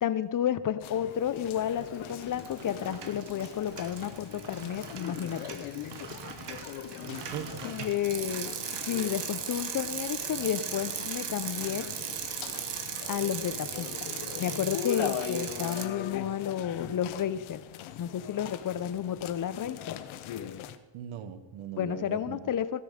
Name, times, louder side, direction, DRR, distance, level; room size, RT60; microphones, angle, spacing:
voice 1, 0.0-5.9 7.6-8.5 8.9-11.9 13.1-14.1 14.4-17.6 18.0-20.0 21.8-22.8, left 10 dB, 40° left, 15 dB, 0.7 m, -31 dB
sound 1, 0.8-20.8, left 9 dB, 75° left, 0.9 m, -41 dB
Bicycle, 1.4-1.8 2.1-15.8, right 8 dB, 60° right, 1.5 m, -38 dB
voice 2, 7.1-7.9 20.9-22.5, right 9 dB, 80° right, 11 dB, 1.2 m, -40 dB
16.0 x 6.8 x 5.1 m, 1.1 s
cardioid pair, 90°, 48 cm